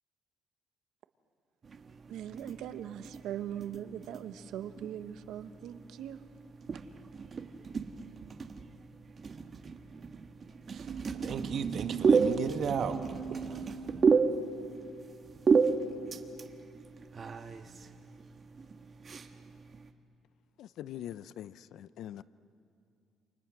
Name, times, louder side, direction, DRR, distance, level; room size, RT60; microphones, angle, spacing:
sound 1, 1.6-19.9, right 5 dB, 40° right, 1.4 m, -33 dB
voice 1, 2.1-6.2, right 10 dB, 80° right, 1.1 m, -40 dB
voice 2, 10.7-14.2, right 7 dB, 55° right, 1.4 m, -35 dB
voice 3, 20.6-22.2, left 11 dB, 75° left, 0.6 m, -43 dB
29.0 x 27.5 x 6.3 m
cardioid pair, 100°, 0 cm